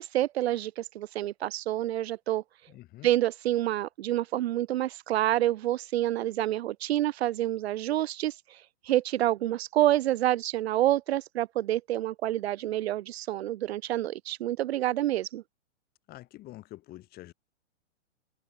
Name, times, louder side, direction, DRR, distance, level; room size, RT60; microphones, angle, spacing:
voice 1, 0.0-2.4 3.0-15.4, right 14 dB, 60° right, 0.8 m, -28 dB
voice 2, 2.7-3.1 16.1-17.3, left 16 dB, 25° left, 2.5 m, -46 dB
hypercardioid pair, 150°, 36 cm